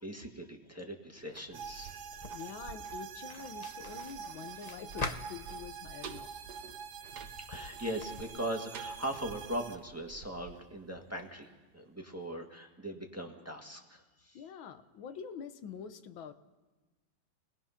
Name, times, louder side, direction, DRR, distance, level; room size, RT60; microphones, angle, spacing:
voice 1, 0.0-2.2 7.4-11.5 11.7-14.4, right 1 dB, 10° right, 2 dB, 1.6 m, -40 dB
sound 1, 1.1-11.9 12.2-12.3, right 6 dB, 60° right, 1.4 m, -52 dB
sound 2, 1.5-9.8, right 7 dB, 80° right, 1.9 m, -45 dB
sound 3, 2.1-8.2, left 3 dB, 35° left, 0.7 m, -45 dB
voice 2, 2.3-6.3 14.3-16.3, left 7 dB, 85° left, 10 dB, 1.7 m, -46 dB
28.5 x 20.0 x 5.8 m, 1.3 s
omnidirectional pair, 2.1 m